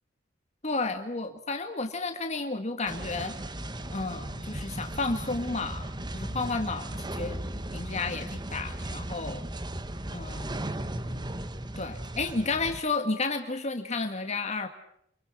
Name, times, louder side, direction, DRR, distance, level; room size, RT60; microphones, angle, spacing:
voice 1, 0.6-3.3 3.9-6.9 7.2-7.4 7.7-9.4 10.1-10.8 11.8-14.7, left 3 dB, 35° left, 7 dB, 1.9 m, -32 dB
sound 1, 2.9-12.8, right 1 dB, 25° right, 1.4 m, -36 dB
28.5 x 23.0 x 6.1 m, 0.71 s
head